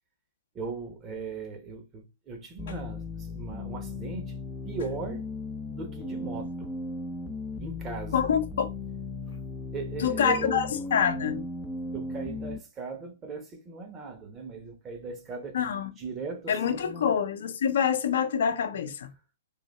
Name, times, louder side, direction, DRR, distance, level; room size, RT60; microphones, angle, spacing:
voice 1, 0.5-4.4 4.6-5.3 5.7-6.7 7.6-8.3 9.7-10.6 11.9-15.6 16.0-17.1, right 4 dB, 25° right, 1.2 m, -38 dB
sound 1, 2.6-12.6, left 3 dB, 10° left, 0.6 m, -36 dB
voice 2, 8.1-8.7 10.0-11.4 15.5-15.9 16.5-19.1, left 7 dB, 60° left, 0.7 m, -26 dB
3.9 x 2.7 x 4.1 m
figure-of-eight pair, 120°, 0 cm